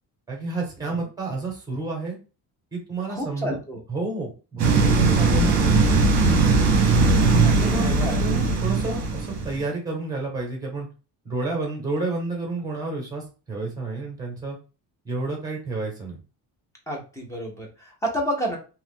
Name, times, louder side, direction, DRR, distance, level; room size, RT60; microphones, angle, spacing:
voice 1, 0.3-2.2 2.7-3.6 3.9-5.7 7.6-10.9 11.2-14.6 15.0-16.2, right 3 dB, 10° right, 0 dB, 1.0 m, -30 dB
voice 2, 3.1-3.8 7.4-8.2 16.9-18.6, equal, 5° left, -1 dB, 0.6 m, -30 dB
sound 1, 4.6-9.6, right 3 dB, 40° right, 0.8 m, -19 dB
2.8 x 2.4 x 3.6 m, 0.34 s
cardioid pair, 180°, 41 cm